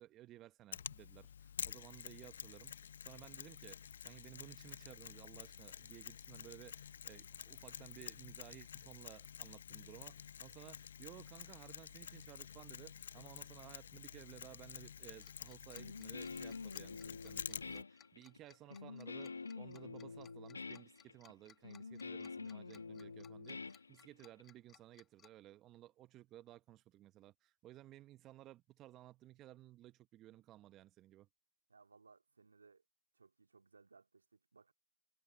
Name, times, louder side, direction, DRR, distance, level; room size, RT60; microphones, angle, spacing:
voice 1, 0.0-3.8 4.0-31.3, right 14 dB, 20° right, 0.9 m, -57 dB
Mechanisms, 0.7-17.8, left 8 dB, 55° left, 0.8 m, -50 dB
Tick-tock, 15.2-25.3, left 9 dB, 15° left, 1.8 m, -65 dB
Guitar, 15.8-24.4, left 4 dB, 80° left, 1.5 m, -47 dB
voice 2, 31.7-32.8 33.1-34.7, right 4 dB, 80° right, 2.4 m, -65 dB
hypercardioid pair, 145°, 0 cm